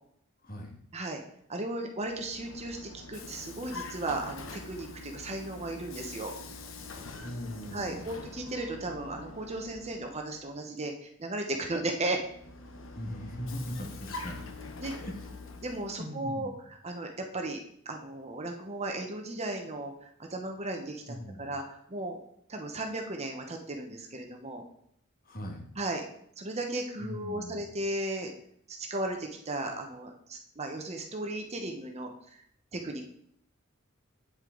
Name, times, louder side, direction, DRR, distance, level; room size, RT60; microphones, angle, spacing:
voice 1, 0.4-0.8 7.2-8.3 13.0-14.4 14.9-15.2 16.0-16.5 21.1-21.5 25.2-25.6 27.0-27.6, equal, 45° left, 2 dB, 2.1 m, -40 dB
voice 2, 1.5-6.3 7.7-12.2 14.8-14.9 15.6-22.2 22.5-24.6 25.8-26.0 26.4-28.3 28.7-32.1 32.7-33.0, right 2 dB, 35° right, 3 dB, 1.1 m, -35 dB
Vehicle, 2.0-10.5 12.2-16.1, left 3 dB, 80° left, 1.1 m, -45 dB
8.8 x 7.9 x 3.9 m, 0.70 s
head